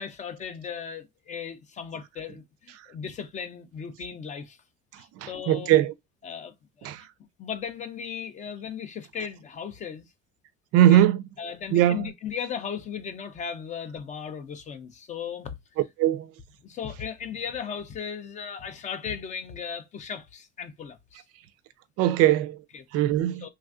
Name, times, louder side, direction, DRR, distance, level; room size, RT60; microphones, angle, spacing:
voice 1, 0.0-4.6 5.0-5.8 6.2-6.9 7.4-10.0 10.9-11.0 11.4-15.6 16.6-21.2 22.7-22.9 23.4-23.5, left 7 dB, 25° left, 0.4 m, -36 dB
voice 2, 5.2-5.9 6.8-7.0 10.7-11.2 11.7-12.1 16.0-16.3 22.0-22.6 22.9-23.5, right 12 dB, 55° right, 0.4 m, -20 dB
3.3 x 2.4 x 2.4 m
cardioid pair, 160°, 29 cm